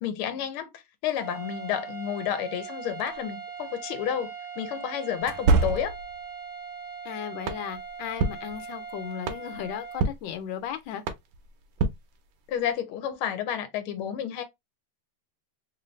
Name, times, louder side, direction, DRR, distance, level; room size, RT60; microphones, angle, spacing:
voice 1, 0.0-5.9 12.5-14.4, left 9 dB, 90° left, 1.6 m, -31 dB
sound 1, 1.1-10.0, right 6 dB, 35° left, 0.8 m, -40 dB
sound 2, 3.0-3.2 5.2-6.2, right 3 dB, 90° right, 1.5 m, -24 dB
voice 2, 7.0-11.0, left 9 dB, 70° left, 1.3 m, -36 dB
sound 3, 7.4-12.8, right 4 dB, 70° right, 1.3 m, -34 dB
3.7 x 2.7 x 3.0 m
omnidirectional pair, 2.3 m